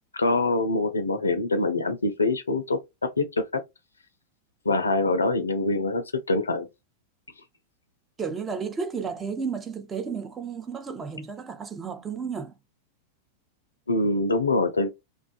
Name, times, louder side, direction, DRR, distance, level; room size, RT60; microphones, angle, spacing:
voice 1, 0.1-3.4 4.7-6.7 13.9-14.9, left 2 dB, 75° left, 0.4 m, -24 dB
voice 2, 8.2-12.5, right 5 dB, 20° right, 0.5 m, -32 dB
2.4 x 2.3 x 2.3 m
figure-of-eight pair, 90°, 0 cm